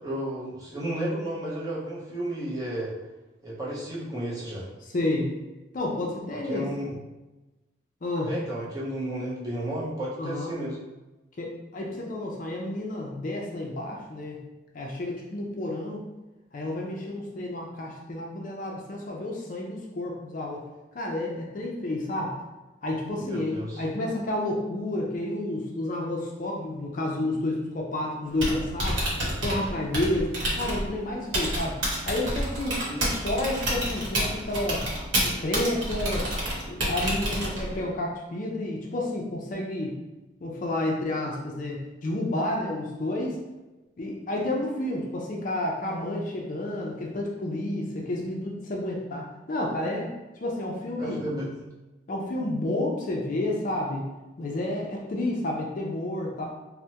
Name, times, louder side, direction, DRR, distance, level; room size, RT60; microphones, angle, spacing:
voice 1, 0.0-2.9 3.4-4.7 6.5-6.9 8.2-10.8 23.2-23.8 32.8-33.2 51.0-51.5, right 1 dB, 20° right, -8 dB, 0.8 m, -32 dB
voice 2, 4.8-5.3 5.7-6.7 8.0-8.3 10.2-10.5 11.4-14.4 14.7-16.0 16.5-20.6 20.9-22.4 22.8-29.0 29.4-34.8 35.2-36.3 36.7-39.9 40.4-43.4 44.0-50.1 50.4-51.2 52.1-54.1 54.4-56.4, left 1 dB, 40° left, -1 dB, 0.4 m, -30 dB
Typing, 28.2-37.8, equal, 85° right, 0.9 m, -29 dB
3.3 x 2.1 x 2.8 m, 1.1 s
head